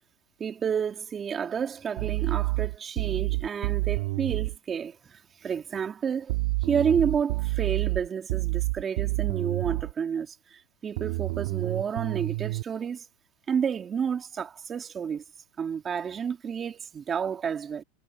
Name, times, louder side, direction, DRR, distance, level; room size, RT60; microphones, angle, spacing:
voice 1, 0.4-6.4 6.7-13.1 13.5-15.2 15.6-17.8, right 7 dB, 25° right, 2.8 m, -30 dB
sound 1, 2.0-4.6 6.3-9.9 11.0-12.6, right 22 dB, 65° right, 3.3 m, -28 dB
supercardioid pair, 135°, 0 cm